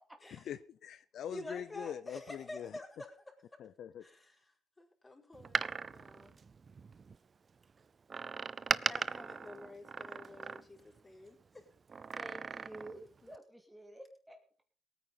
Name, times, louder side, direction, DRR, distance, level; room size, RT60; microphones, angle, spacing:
voice 1, 0.5-2.8 3.6-4.1, left 9 dB, 70° left, 14 dB, 0.6 m, -43 dB
voice 2, 1.3-3.1 4.0-4.4 4.8-6.4 8.9-11.6, left 2 dB, 20° left, 1 dB, 5.2 m, -49 dB
Door, 5.3-7.2 8.1-11.0 11.9-13.0 13.3-13.4, right 5 dB, 40° right, 0.6 m, -38 dB
voice 3, 12.2-13.0 13.3-14.4, right 1 dB, 5° right, 4 dB, 2.5 m, -50 dB
18.5 x 9.3 x 5.5 m, 0.41 s
cardioid pair, 90°, 0 cm